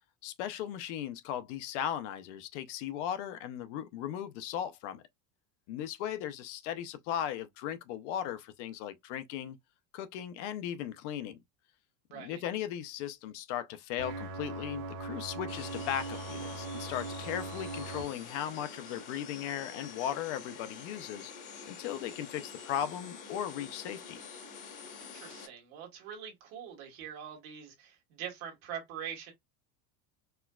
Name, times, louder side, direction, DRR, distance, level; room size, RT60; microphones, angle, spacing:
voice 1, 0.2-5.0 5.7-9.6 9.9-11.4 12.1-21.3 21.7-24.2, left 10 dB, 60° left, 0.5 m, -37 dB
voice 2, 12.1-12.4 25.0-29.3, right 8 dB, 50° right, 1.6 m, -43 dB
sound 1, 14.0-18.0, right 3 dB, 80° right, 1.3 m, -40 dB
sound 2, 15.5-25.5, left 5 dB, 80° left, 1.9 m, -47 dB
4.4 x 2.2 x 2.2 m
cardioid pair, 175°, 41 cm